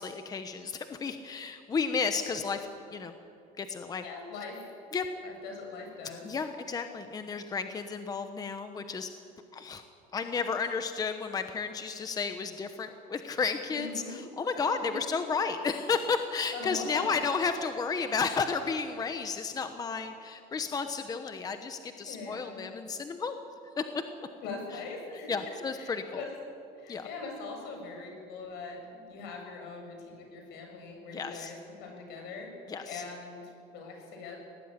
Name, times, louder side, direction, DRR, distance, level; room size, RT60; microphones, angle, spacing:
voice 1, 0.0-3.1 3.6-4.0 4.9-5.0 6.2-9.1 9.5-9.8 10.1-23.4 23.8-23.9 25.3-26.2 26.9-27.1 31.1-31.5 32.7-33.0, left 5 dB, 20° left, 8 dB, 1.0 m, -32 dB
voice 2, 4.0-4.7 5.2-6.4 13.7-14.2 14.5-15.0 16.5-17.2 22.1-22.7 24.4-25.3 25.7-26.3 26.8-32.5 32.9-34.4, left 4 dB, 75° left, 3 dB, 7.1 m, -42 dB
23.0 x 18.5 x 9.9 m, 2.6 s
cardioid pair, 155°, 18 cm